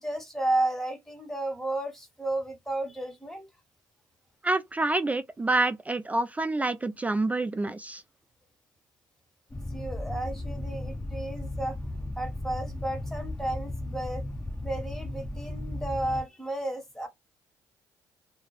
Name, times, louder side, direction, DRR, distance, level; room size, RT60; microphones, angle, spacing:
voice 1, 0.0-3.5 9.7-11.8 12.2-14.2 14.6-17.1, right 2 dB, 5° left, 1.3 m, -32 dB
voice 2, 4.4-8.0, right 2 dB, 15° right, 0.3 m, -27 dB
sound 1, 9.5-16.2, left 1 dB, 20° left, 1.0 m, -35 dB
2.3 x 2.1 x 3.2 m
supercardioid pair, 70°, 9 cm